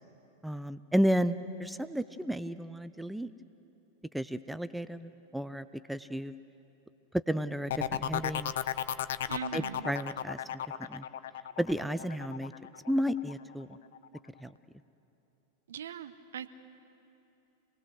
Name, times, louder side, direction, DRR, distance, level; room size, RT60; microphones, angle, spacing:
voice 1, 0.4-3.3 4.1-6.3 7.3-8.5 9.5-10.4 10.8-11.0 11.6-12.5 12.9-13.8 14.4-14.5, equal, 5° right, 13 dB, 0.5 m, -32 dB
sound 1, 7.7-13.3 13.7-14.2, left 10 dB, 60° left, 0.6 m, -34 dB
voice 2, 9.3-9.9 15.7-16.5, right 8 dB, 65° right, 11 dB, 0.9 m, -40 dB
26.5 x 19.5 x 6.5 m, 3.0 s
figure-of-eight pair, 90°, 0 cm